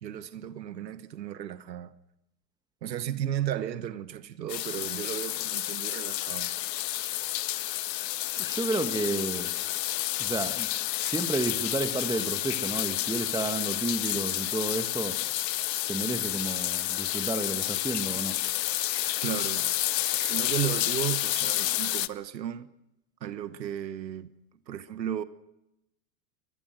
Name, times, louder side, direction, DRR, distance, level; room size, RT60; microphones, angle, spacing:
voice 1, 0.0-1.9 2.8-6.5 14.0-14.2 19.2-19.8 20.2-22.7 23.2-24.3 24.7-25.2, right 10 dB, 90° right, 1.2 m, -34 dB
sound 1, 4.5-22.1, left 15 dB, 80° left, 0.9 m, -30 dB
voice 2, 8.4-9.5 10.2-10.7 11.0-15.2 15.9-18.4, right 2 dB, 10° right, 2.1 m, -31 dB
23.0 x 21.0 x 6.2 m
hypercardioid pair, 95°, 50 cm